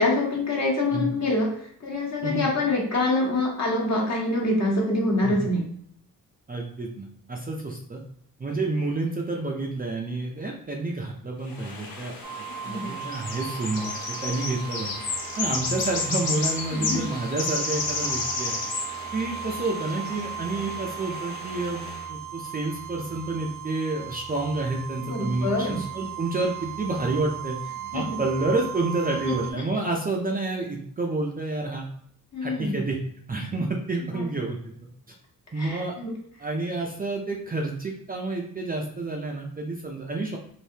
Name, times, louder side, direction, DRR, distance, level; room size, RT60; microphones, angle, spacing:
voice 1, 0.0-5.7 12.7-12.9 16.7-17.0 25.1-25.8 27.9-28.2 29.2-29.3 32.3-32.8 34.1-34.2 35.6-36.1, left 2 dB, 45° left, -2 dB, 1.1 m, -25 dB
voice 2, 6.5-8.0 8.4-12.1 12.6-14.9 15.4-18.6 19.1-27.6 27.9-31.9 32.4-33.0 33.3-34.6 35.5-35.9 36.4-40.4, right 2 dB, 25° right, 0 dB, 0.4 m, -29 dB
sound 1, 11.5-22.0, left 3 dB, 70° left, 0.9 m, -32 dB
sound 2, 12.2-29.5, right 9 dB, 60° right, 0.6 m, -38 dB
3.3 x 2.6 x 2.8 m, 0.65 s
cardioid pair, 100°, 37 cm